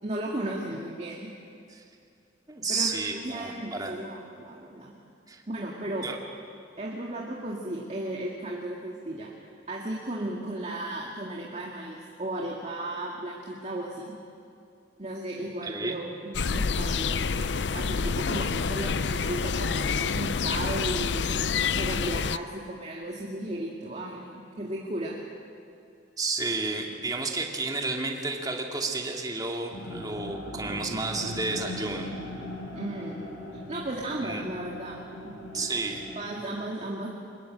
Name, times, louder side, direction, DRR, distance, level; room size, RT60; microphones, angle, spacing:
voice 1, 0.0-1.3 2.7-3.0 3.2-4.9 5.5-6.1 6.8-9.3 9.7-14.1 15.0-21.3 21.8-25.2 32.7-33.2 33.7-35.0 35.2-35.5 36.2-37.1, right 1 dB, 35° right, -2 dB, 2.2 m, -35 dB
voice 2, 2.5-3.9 5.3-5.4 6.0-6.2 15.7-15.9 26.2-32.1 34.2-34.4 35.5-36.0, right 3 dB, 20° right, 1 dB, 2.4 m, -31 dB
sound 1, 16.3-22.4, left 5 dB, 70° left, 0.6 m, -28 dB
sound 2, 29.7-36.4, left 1 dB, 90° left, 5.6 m, -39 dB
24.0 x 21.0 x 8.9 m, 2.5 s
head